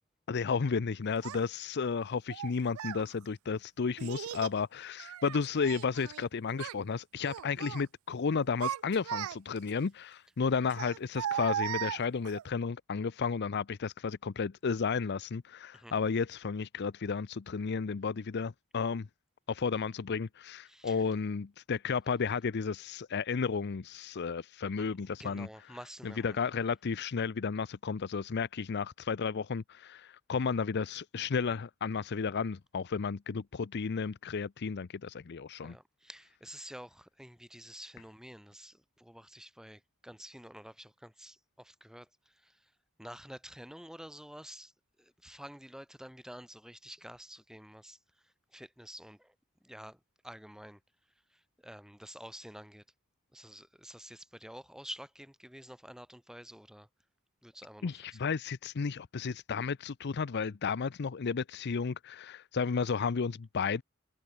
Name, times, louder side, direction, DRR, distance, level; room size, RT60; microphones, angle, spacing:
voice 1, 0.3-19.1 19.5-25.8 26.0-35.8 57.8-63.8, left 5 dB, 55° left, 0.5 m, -33 dB
Child speech kid speaking, 1.2-1.4 2.3-3.0 4.0-4.6 5.0-6.3 6.5-6.8 7.2-7.8 8.3-9.7 10.7-12.4, right 10 dB, 80° right, 0.3 m, -37 dB
voice 2, 20.7-21.0 24.8-24.9 25.2-26.4 35.6-42.1 42.4-42.6 43.0-44.7 45.0-48.0 48.5-49.3 49.6-50.0 50.2-50.8 51.6-52.8 53.3-56.9 57.4-58.0, equal, 5° right, 4.8 m, -49 dB
head